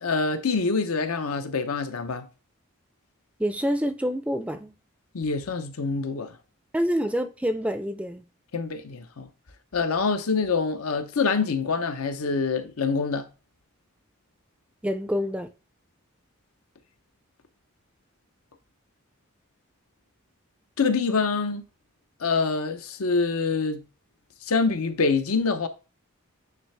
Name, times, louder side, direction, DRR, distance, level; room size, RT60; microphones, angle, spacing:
voice 1, 0.0-2.3 5.1-6.3 8.5-9.3 9.7-13.3 20.8-21.6 22.2-23.8 24.5-25.7, left 4 dB, 90° left, 0.8 m, -25 dB
voice 2, 3.4-4.7 6.7-8.2 14.8-15.5, equal, 5° right, 0.3 m, -27 dB
9.3 x 3.2 x 3.3 m
head